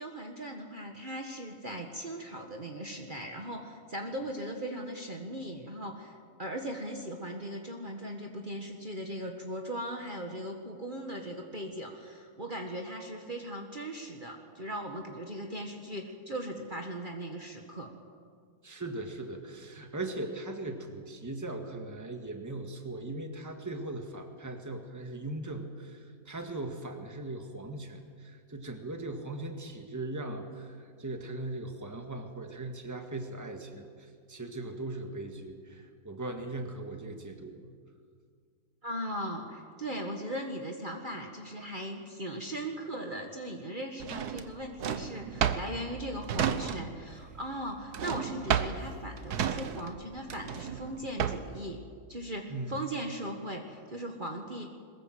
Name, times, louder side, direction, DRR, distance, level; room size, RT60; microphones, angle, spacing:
voice 1, 0.0-17.9 38.8-51.8 52.1-54.7, right 1 dB, 30° right, 2 dB, 1.8 m, -38 dB
voice 2, 18.6-37.7 52.5-52.7, right 2 dB, 10° right, 4 dB, 1.8 m, -39 dB
Drawer open or close, 44.0-47.1 47.4-51.6, right 8 dB, 90° right, 1.5 m, -32 dB
22.0 x 20.5 x 7.8 m, 2.1 s
omnidirectional pair, 1.6 m